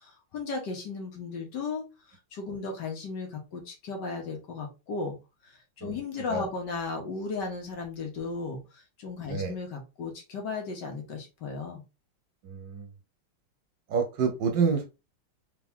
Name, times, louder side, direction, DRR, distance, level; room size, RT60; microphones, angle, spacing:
voice 1, 0.0-1.8 2.3-5.2 5.4-5.5 5.8-11.8, left 4 dB, 60° left, 2 dB, 1.7 m, -35 dB
voice 2, 12.4-12.9 13.9-14.8, right 5 dB, 65° right, 5 dB, 1.2 m, -28 dB
3.6 x 3.5 x 3.5 m, 0.27 s
omnidirectional pair, 2.3 m